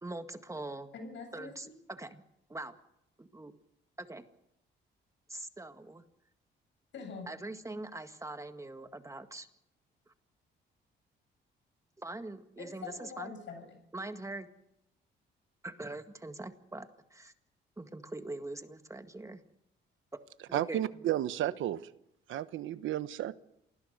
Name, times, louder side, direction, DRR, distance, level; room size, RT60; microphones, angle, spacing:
voice 1, 0.0-0.9 1.3-2.2 2.5-2.7 3.2-3.5 4.0-4.2 5.3-6.0 7.3-9.5 12.0-13.3 13.9-14.5 15.6-17.3 17.8-19.4 20.5-20.8 21.4-21.5, right 2 dB, 15° right, 7 dB, 1.8 m, -43 dB
voice 2, 0.9-1.8 6.9-7.3 12.6-13.8, left 4 dB, 70° left, 7 dB, 7.4 m, -44 dB
voice 3, 20.5-21.8 22.3-23.4, right 12 dB, 80° right, 13 dB, 1.2 m, -32 dB
28.0 x 20.0 x 6.7 m, 0.82 s
cardioid pair, 90°, 20 cm